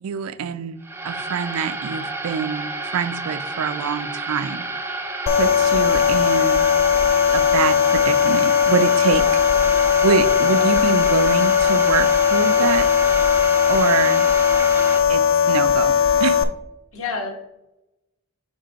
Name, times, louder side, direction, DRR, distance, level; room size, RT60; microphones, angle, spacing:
voice 1, 0.0-4.6 5.4-6.7 7.3-9.2 10.0-12.9 13.7-14.3 15.1-16.4, right 7 dB, 80° right, 14 dB, 0.4 m, -25 dB
sound 1, 0.8-15.0, right 2 dB, 10° right, 0.4 m, -30 dB
sound 2, 5.3-16.4, left 7 dB, 60° left, 0.4 m, -18 dB
voice 2, 9.5-10.0 16.9-17.3, left 4 dB, 75° left, 2 dB, 1.3 m, -31 dB
5.3 x 3.6 x 5.1 m, 0.90 s
head